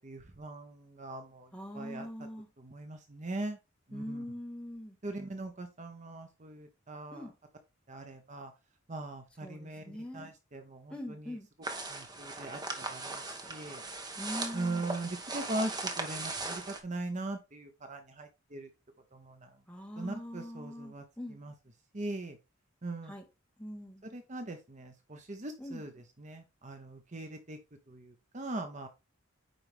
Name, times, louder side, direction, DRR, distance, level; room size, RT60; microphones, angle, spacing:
voice 1, 0.0-2.1 2.6-3.6 3.9-4.2 5.0-7.3 7.9-8.5 8.9-11.3 11.9-13.8 14.5-18.7 19.1-19.5 20.0-21.0 21.3-21.5 21.9-22.4 22.8-23.1 24.1-25.9 26.2-27.6 27.9-28.9, right 2 dB, 35° right, 0.9 m, -40 dB
voice 2, 1.5-2.5 3.9-5.0 7.1-7.3 9.4-10.3 10.9-11.5 14.2-14.9 19.7-21.4 23.0-23.2 23.6-24.0 25.6-25.8, equal, 5° left, 1.8 m, -42 dB
sound 1, 11.6-16.8, right 2 dB, 20° right, 1.3 m, -39 dB
9.2 x 4.7 x 3.6 m
head